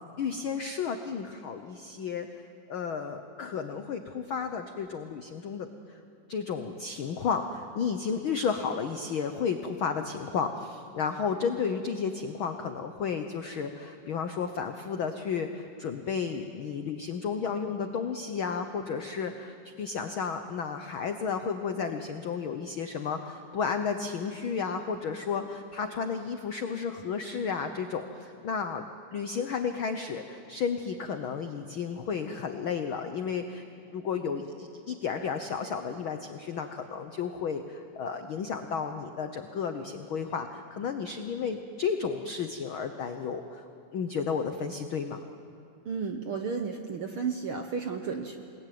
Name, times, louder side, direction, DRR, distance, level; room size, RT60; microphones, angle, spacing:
voice 1, 0.2-2.3 2.7-6.0 6.3-28.8 29.1-33.6 33.9-43.6 43.9-45.2, left 6 dB, 75° left, 7 dB, 1.2 m, -32 dB
voice 2, 45.8-48.4, right 5 dB, 65° right, 5 dB, 1.4 m, -33 dB
28.5 x 20.0 x 9.5 m, 2.5 s
omnidirectional pair, 3.7 m